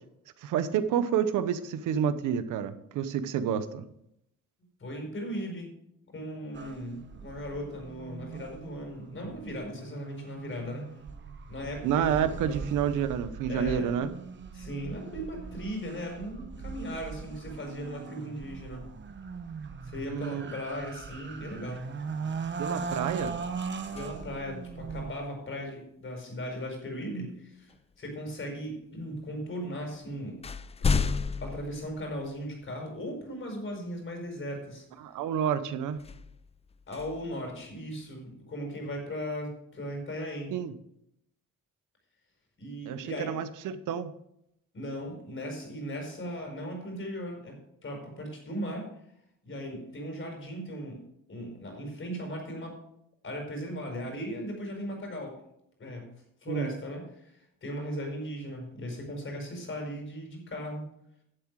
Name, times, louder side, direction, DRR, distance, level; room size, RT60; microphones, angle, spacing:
voice 1, 0.4-3.8 11.8-14.1 20.1-20.5 22.6-23.3 35.0-36.0 40.5-40.7 42.9-44.1 56.5-56.7, right 8 dB, 85° right, 11 dB, 1.0 m, -29 dB
voice 2, 4.8-5.7 6.1-10.9 11.5-12.7 13.5-13.9 14.5-18.8 19.8-21.9 23.9-30.4 31.4-34.9 36.9-40.5 42.6-43.3 44.7-48.9 49.4-51.0 51.3-52.8 53.2-55.4 55.8-56.1 56.4-60.8, equal, 40° left, 3 dB, 4.8 m, -37 dB
sound 1, 6.5-25.2, right 5 dB, 40° right, 1.1 m, -40 dB
sound 2, 21.8-22.1 22.5-24.6 26.7-26.9 27.7-28.5 29.3-29.4 29.8-32.7 33.2-33.3 35.9-38.1, left 5 dB, 20° left, 0.4 m, -34 dB
11.0 x 7.5 x 4.8 m, 0.75 s
cardioid pair, 90°, 30 cm